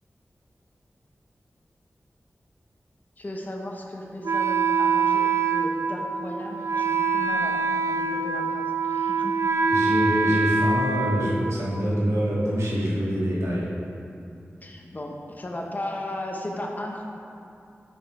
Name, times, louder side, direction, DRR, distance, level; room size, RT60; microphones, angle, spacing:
voice 1, 3.2-9.4 14.6-17.0, left 1 dB, 35° left, 0 dB, 0.9 m, -36 dB
Wind instrument woodwind instrument, 4.2-12.0, right 4 dB, 70° right, 0.4 m, -24 dB
voice 2, 9.7-13.7, equal, 90° right, -7 dB, 1.8 m, -25 dB
6.2 x 6.2 x 4.7 m, 2.6 s
wide cardioid pair, 80°, 5 cm